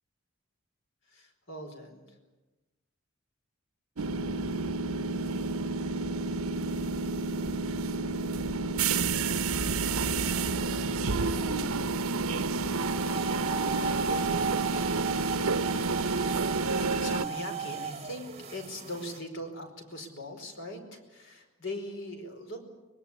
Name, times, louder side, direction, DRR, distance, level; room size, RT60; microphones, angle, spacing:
voice 1, 1.0-2.2 10.5-12.1 16.2-22.6, left 1 dB, 60° left, 5 dB, 4.8 m, -41 dB
sound 1, 4.0-17.3, right 3 dB, 80° right, 0.9 m, -30 dB
sound 2, 12.8-19.2, right 4 dB, 30° right, 1.1 m, -35 dB
24.5 x 21.0 x 8.7 m, 1.1 s
head